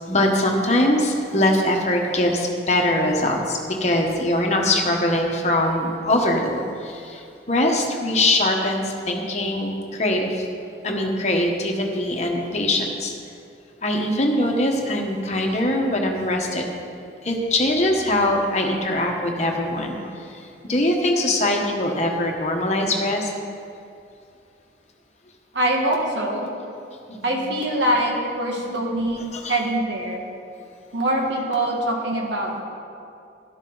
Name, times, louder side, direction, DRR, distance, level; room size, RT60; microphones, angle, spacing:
voice 1, 0.1-7.2 7.5-10.4 10.8-13.1 13.8-16.6 17.2-20.1 20.6-23.3 27.1-27.2 28.5-28.7 29.3-29.6, left 1 dB, 35° left, 1 dB, 1.2 m, -22 dB
voice 2, 25.5-26.5 27.2-30.2 30.9-32.6, right 1 dB, 75° right, -1 dB, 1.9 m, -24 dB
12.5 x 11.5 x 4.0 m, 2.5 s
head